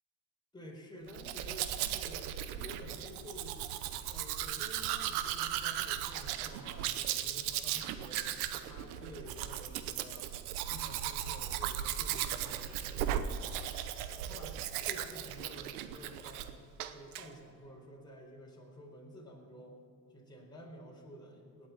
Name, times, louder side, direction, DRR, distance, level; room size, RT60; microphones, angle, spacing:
voice 1, 0.5-3.6 4.1-8.3 8.6-10.3 10.7-13.7 14.2-16.5 16.9-19.8 20.1-21.7, equal, 10° left, -3 dB, 4.5 m, -51 dB
Domestic sounds home sounds, 1.1-16.5 16.8-17.3, right 11 dB, 85° right, 0.9 m, -37 dB
18.5 x 8.5 x 8.6 m, 2.2 s
hypercardioid pair, 65°, 43 cm